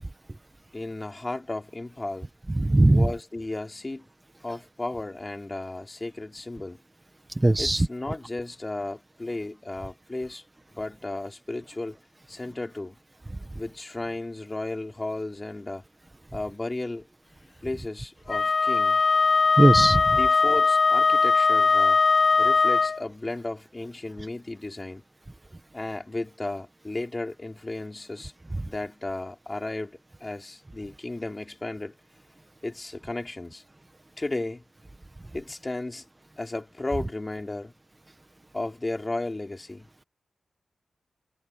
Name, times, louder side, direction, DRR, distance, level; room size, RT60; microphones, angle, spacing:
voice 1, 0.7-2.3 2.9-4.1 4.4-6.8 7.6-10.4 10.7-12.0 12.3-13.0 13.5-15.8 16.3-17.1 17.6-19.0 20.1-22.0 22.4-25.0 25.7-28.3 28.7-32.0 32.6-33.6 34.2-34.6 35.3-36.1 36.4-37.7 38.5-39.9, left 2 dB, 25° left, 4.7 m, -34 dB
voice 2, 2.6-3.1 7.4-7.9 19.6-20.0, right 2 dB, 20° right, 1.4 m, -18 dB
Wind instrument woodwind instrument, 18.3-23.0, left 4 dB, 50° left, 1.1 m, -20 dB
cardioid pair, 75°, 0 cm